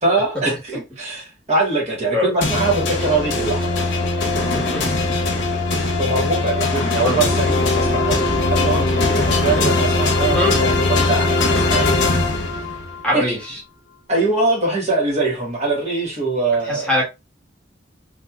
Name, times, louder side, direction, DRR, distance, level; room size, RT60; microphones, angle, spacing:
voice 1, 0.0-3.8 6.0-12.4 13.1-13.4 14.1-16.9, right 3 dB, 35° right, 1.5 m, -22 dB
sound 1, 2.4-13.0, left 3 dB, 70° left, 0.9 m, -20 dB
voice 2, 13.0-13.4 16.7-17.0, left 1 dB, 5° left, 1.3 m, -21 dB
3.3 x 2.8 x 2.3 m
head